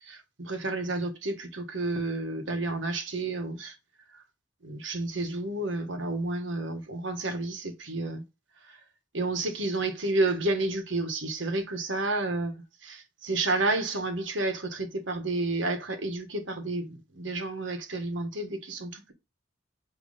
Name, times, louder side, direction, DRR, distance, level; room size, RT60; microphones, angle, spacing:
voice 1, 0.0-3.7 4.1-4.2 4.6-8.2 8.7-8.8 9.1-12.5 12.8-19.1, right 2 dB, 80° right, 1.4 m, -30 dB
8.5 x 3.1 x 4.0 m
head